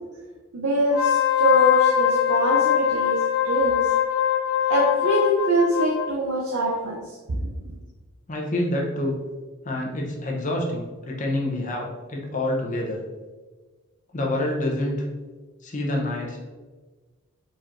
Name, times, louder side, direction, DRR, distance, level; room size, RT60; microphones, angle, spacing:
voice 1, 0.5-3.9 4.7-7.8, right 1 dB, 85° right, -1 dB, 0.7 m, -24 dB
Wind instrument woodwind instrument, 0.8-6.1, left 11 dB, 90° left, 0.5 m, -22 dB
voice 2, 8.3-9.2 9.6-13.0 14.1-15.1 15.6-16.4, left 1 dB, 35° left, -1 dB, 0.7 m, -27 dB
4.5 x 4.3 x 2.5 m, 1.3 s
head